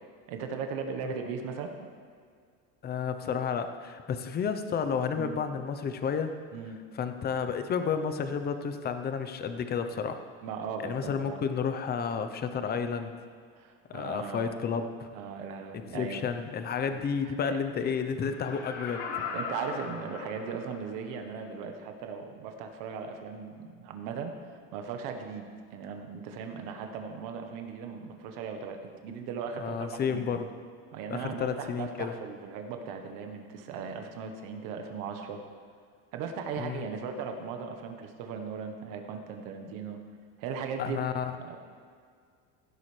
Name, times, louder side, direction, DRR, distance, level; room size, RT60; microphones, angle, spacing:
voice 1, 0.3-1.7 5.2-5.4 6.5-6.8 10.4-11.4 13.5-14.6 15.1-16.2 16.9-17.6 19.3-28.8 29.0-30.2 30.9-35.4 36.1-40.0 40.4-41.0 41.4-41.6, right 6 dB, 75° right, 5 dB, 1.3 m, -38 dB
voice 2, 2.8-6.3 6.9-10.2 10.8-13.1 13.9-15.1 15.7-19.0 29.6-30.5 31.1-32.2 36.6-36.9 40.8-41.3, left 6 dB, 30° left, 8 dB, 0.8 m, -31 dB
Laughter, 18.2-20.9 21.4-21.5, left 5 dB, 90° left, 2.1 m, -38 dB
16.5 x 11.5 x 3.4 m, 2.1 s
cardioid pair, 140°, 33 cm